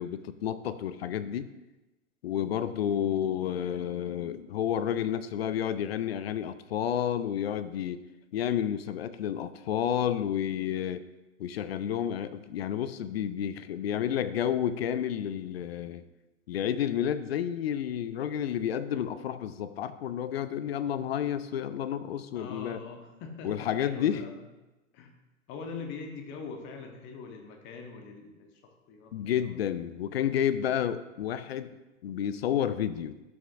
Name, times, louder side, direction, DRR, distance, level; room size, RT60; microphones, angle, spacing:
voice 1, 0.0-1.5 2.2-8.0 8.3-11.0 11.4-16.0 16.5-22.8 23.4-24.2 29.1-31.8 32.0-33.2, left 9 dB, 50° left, 13 dB, 0.6 m, -30 dB
voice 2, 22.3-24.3 24.9-25.1 25.5-29.5, left 4 dB, 30° left, 4 dB, 1.2 m, -42 dB
12.0 x 5.9 x 2.6 m, 1.0 s
figure-of-eight pair, 105°, 39 cm